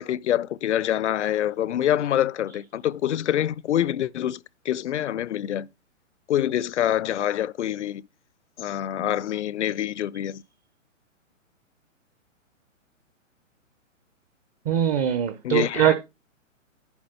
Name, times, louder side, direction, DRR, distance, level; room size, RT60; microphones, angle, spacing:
voice 1, 0.0-5.7 6.3-8.0 8.6-10.4 15.4-15.9, left 11 dB, 60° left, 0.5 m, -26 dB
voice 2, 14.7-15.9, right 10 dB, 25° right, 0.8 m, -22 dB
10.5 x 3.7 x 6.7 m
hypercardioid pair, 125°, 39 cm